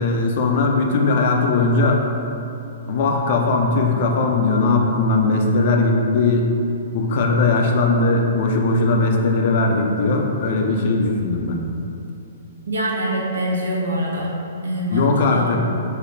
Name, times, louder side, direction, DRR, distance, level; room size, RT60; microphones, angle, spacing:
voice 1, 0.0-2.0 2.9-6.5 6.9-11.6 14.9-15.6, left 3 dB, 45° left, 1 dB, 0.4 m, -19 dB
voice 2, 12.7-14.4 14.6-15.6, equal, 70° right, -3 dB, 0.6 m, -24 dB
5.1 x 2.0 x 2.6 m, 2.8 s
figure-of-eight pair, 115°, 0 cm